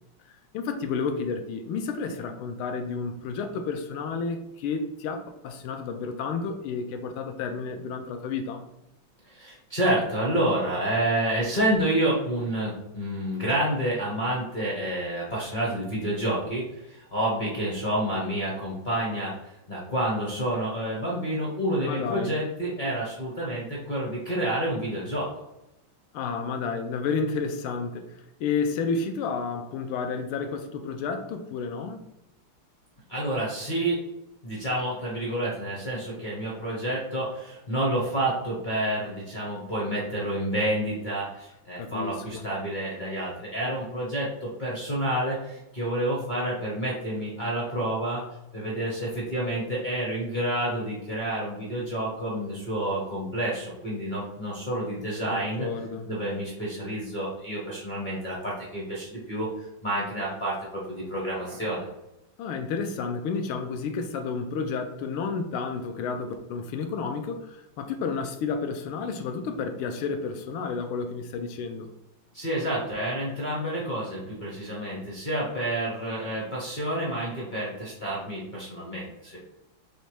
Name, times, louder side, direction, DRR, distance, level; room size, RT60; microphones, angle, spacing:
voice 1, 0.5-8.6 21.8-22.3 26.1-28.0 28.4-32.0 41.8-42.4 55.3-56.1 62.4-71.9, left 5 dB, 80° left, 5 dB, 1.4 m, -31 dB
voice 2, 9.2-25.3 33.1-34.0 34.4-48.2 48.5-55.7 56.1-59.5 59.8-61.9 72.3-79.4, right 1 dB, 40° left, -5 dB, 0.6 m, -29 dB
4.2 x 3.3 x 3.2 m, 0.88 s
omnidirectional pair, 2.3 m